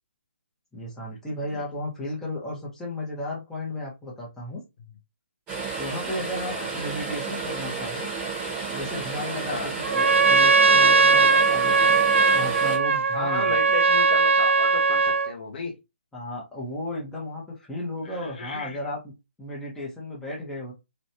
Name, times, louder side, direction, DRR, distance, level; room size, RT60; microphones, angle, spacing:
voice 1, 0.7-4.6 5.8-8.1 8.7-12.0 12.3-13.6 16.1-19.1 19.4-20.7, left 1 dB, 5° left, 1.2 m, -34 dB
sound 1, 5.5-12.8, right 4 dB, 20° right, 1.5 m, -32 dB
Trumpet, 9.8-15.3, right 4 dB, 75° right, 0.4 m, -19 dB
voice 2, 13.1-15.8 18.0-18.8, left 4 dB, 45° left, 0.9 m, -33 dB
3.1 x 3.0 x 2.8 m
figure-of-eight pair, 145°, 7 cm